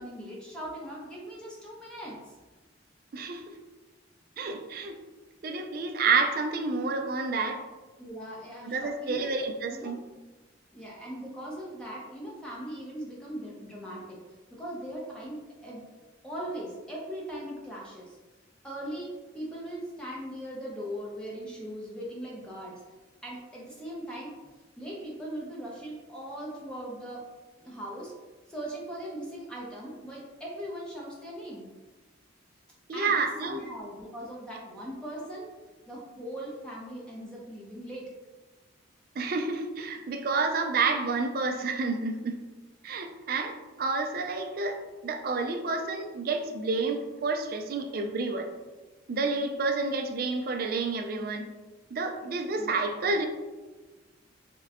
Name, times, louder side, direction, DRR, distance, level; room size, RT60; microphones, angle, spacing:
voice 1, 0.0-2.4 8.0-9.4 9.7-10.0 10.7-14.2 14.5-15.8 16.2-18.2 18.6-22.8 23.2-24.4 24.8-27.2 27.6-28.1 28.5-31.7 32.9-33.1 33.4-35.5 35.9-38.1 52.6-53.1, right 1 dB, 5° left, -5 dB, 0.5 m, -39 dB
voice 2, 3.1-3.4 4.4-4.9 5.4-7.6 8.6-10.0 32.9-33.6 39.2-42.4 42.8-44.8 45.0-48.5 49.1-51.5 51.9-53.3, right 4 dB, 45° right, 5 dB, 0.3 m, -29 dB
3.6 x 2.2 x 3.5 m, 1.2 s
head